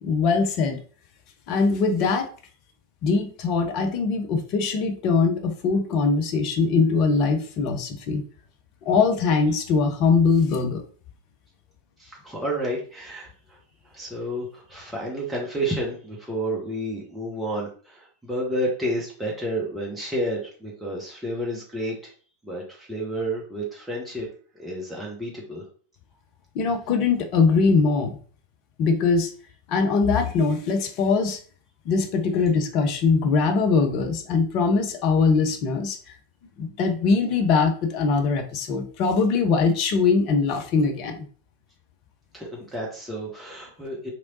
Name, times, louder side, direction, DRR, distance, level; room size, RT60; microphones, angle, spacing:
voice 1, 0.0-0.8 1.5-2.3 3.0-8.2 8.9-10.8 26.5-28.2 28.8-29.3 29.7-31.4 31.9-36.1 36.6-41.3, left 4 dB, 40° left, 6 dB, 0.5 m, -22 dB
voice 2, 12.0-13.6 13.9-22.0 22.4-24.3 24.5-25.6 42.3-44.1, right 1 dB, 5° right, -4 dB, 0.9 m, -30 dB
3.0 x 2.9 x 2.6 m, 0.42 s
figure-of-eight pair, 90°, 0 cm